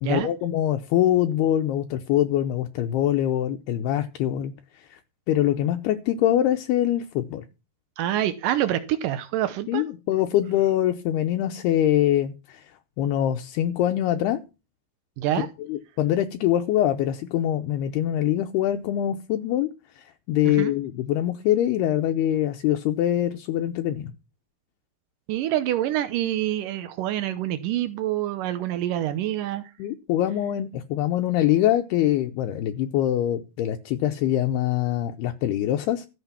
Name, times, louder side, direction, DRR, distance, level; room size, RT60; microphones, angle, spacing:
voice 1, 0.0-4.5 4.9-5.0 5.3-7.5 9.7-12.6 13.0-14.4 15.7-19.7 20.3-24.1 29.8-36.1, left 12 dB, 80° left, 6 dB, 2.7 m, -24 dB
voice 2, 8.0-9.8 15.2-15.5 20.5-20.7 25.3-29.6, right 12 dB, 90° right, 11 dB, 1.9 m, -26 dB
14.0 x 6.7 x 5.8 m, 0.29 s
omnidirectional pair, 4.9 m